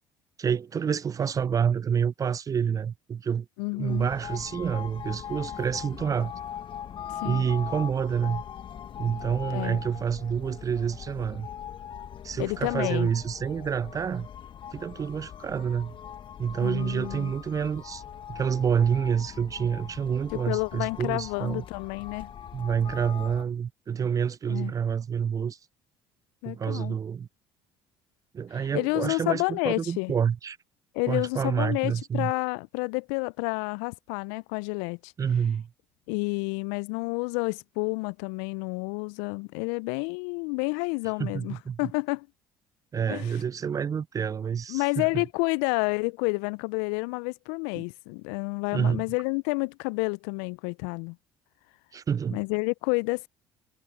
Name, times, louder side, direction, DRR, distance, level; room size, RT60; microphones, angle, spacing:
voice 1, 0.4-3.5 3.8-6.3 7.2-8.4 9.0-11.5 12.2-14.3 14.7-16.0 16.4-18.0 18.3-21.6 22.5-25.6 26.4-27.3 28.3-30.6 31.1-32.3 35.2-35.7 41.2-41.9 42.9-45.2 47.8-47.9 48.7-49.0 51.9-52.4, right 7 dB, 30° right, 0.3 m, -28 dB
voice 2, 3.6-4.1 7.1-7.5 9.5-9.8 12.4-13.1 16.6-17.3 20.5-22.3 24.5-24.7 26.4-27.0 28.7-30.1 30.9-35.1 36.1-42.3 43.1-43.3 44.7-51.2 52.3-53.3, left 32 dB, 75° left, 0.4 m, -30 dB
sound 1, 3.9-23.4, left 9 dB, 45° left, 1.2 m, -41 dB
hypercardioid pair, 65°, 12 cm